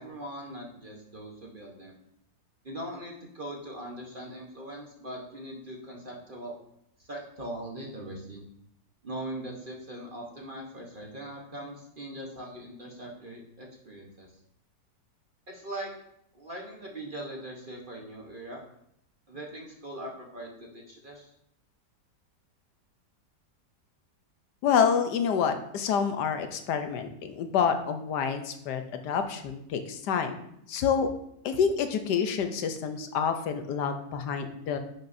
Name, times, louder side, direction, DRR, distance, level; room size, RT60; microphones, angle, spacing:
voice 1, 0.0-2.0 2.6-6.5 7.0-8.4 9.0-14.3 15.5-15.9 16.3-18.6 19.3-21.3, right 1 dB, 35° right, -1 dB, 1.1 m, -41 dB
voice 2, 24.6-30.4 30.7-31.1 31.4-34.8, left 7 dB, 80° left, 7 dB, 1.3 m, -28 dB
10.5 x 5.9 x 2.6 m, 0.75 s
omnidirectional pair, 1.8 m